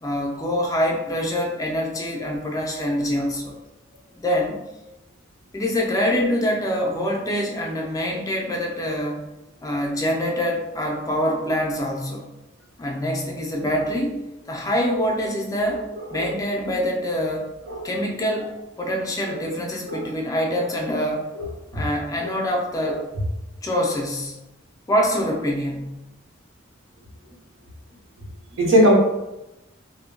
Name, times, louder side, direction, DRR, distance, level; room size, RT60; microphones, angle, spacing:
voice 1, 0.0-3.5 4.2-4.6 5.5-9.3 9.6-12.2 12.8-15.9 16.1-17.5 17.8-21.3 21.7-23.0 23.6-24.4 24.9-26.0, equal, 20° left, 0 dB, 0.4 m, -25 dB
voice 2, 28.6-29.0, equal, 80° right, -1 dB, 0.7 m, -18 dB
2.2 x 2.0 x 3.6 m, 0.95 s
head